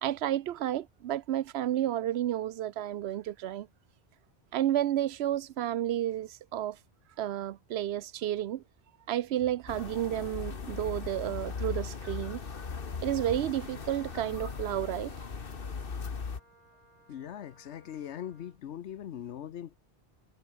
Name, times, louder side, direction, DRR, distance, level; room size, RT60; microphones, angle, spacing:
voice 1, 0.0-3.7 4.5-6.8 7.2-8.6 9.1-12.4 13.0-15.1, right 12 dB, 75° right, 0.8 m, -31 dB
sound 1, 9.7-16.4, left 5 dB, 55° left, 1.5 m, -38 dB
Wind instrument woodwind instrument, 10.6-18.6, right 1 dB, 35° right, 5.7 m, -62 dB
voice 2, 17.1-19.7, left 10 dB, 85° left, 1.1 m, -41 dB
omnidirectional pair, 1.1 m